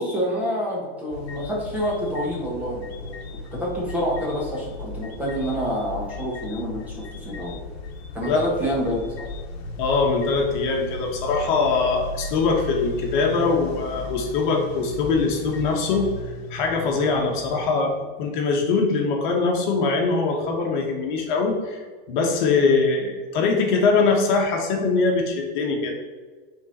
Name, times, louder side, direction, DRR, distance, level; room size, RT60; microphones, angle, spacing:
voice 1, 0.0-7.6 8.1-9.2, equal, 5° right, -6 dB, 1.4 m, -28 dB
sound 1, 1.1-17.7, left 3 dB, 90° left, 1.1 m, -36 dB
voice 2, 9.8-16.1 16.5-17.9 18.2-21.8 22.1-25.9, left 4 dB, 50° left, 1 dB, 1.2 m, -22 dB
8.3 x 3.8 x 4.1 m, 1.5 s
supercardioid pair, 180°, 30 cm